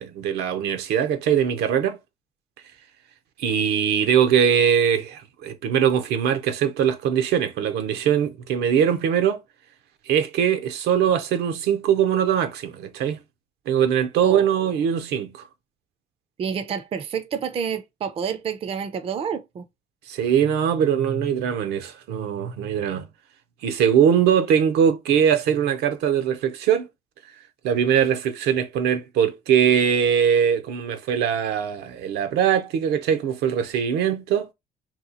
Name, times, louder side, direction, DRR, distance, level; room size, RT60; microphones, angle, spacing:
voice 1, 0.0-2.0 3.4-9.4 10.1-13.2 13.7-15.5 20.1-23.1 23.6-26.9 27.6-34.5, right 8 dB, 75° right, 0.6 m, -21 dB
voice 2, 14.2-14.6 16.4-19.6, right 7 dB, 35° right, 0.4 m, -29 dB
2.9 x 2.3 x 3.7 m
cardioid pair, 110°, 17 cm